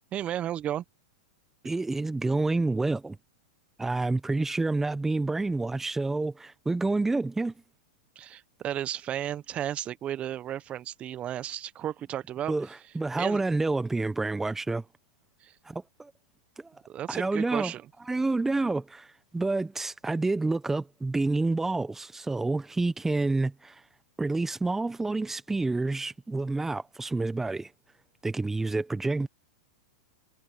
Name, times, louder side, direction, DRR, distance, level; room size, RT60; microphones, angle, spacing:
voice 1, 0.1-0.8 8.1-12.5 13.2-13.4 15.4-15.5 16.9-17.8, right 11 dB, 30° right, 1.2 m, -33 dB
voice 2, 1.6-3.2 3.8-7.5 12.5-12.7 12.9-14.8 15.6-16.1 16.6-16.7 17.1-17.7 18.1-23.8 24.2-27.7 28.2-29.3, right 3 dB, 10° right, 1.1 m, -28 dB
hypercardioid pair, 110°, 4 cm